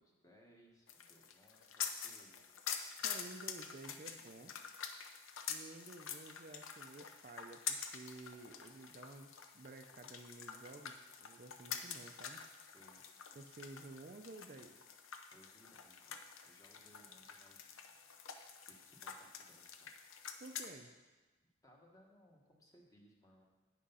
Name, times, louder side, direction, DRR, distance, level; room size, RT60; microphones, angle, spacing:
voice 1, 0.0-2.5 12.7-13.1 15.3-17.8 18.6-19.9 21.6-23.4, equal, 15° left, -1 dB, 1.2 m, -66 dB
sound 1, 0.9-20.7, left 7 dB, 85° left, 0.7 m, -47 dB
voice 2, 3.0-4.5 5.5-12.4 13.3-14.9 20.4-21.0, right 2 dB, 40° right, 5 dB, 0.4 m, -53 dB
9.0 x 6.4 x 5.5 m, 1.2 s
head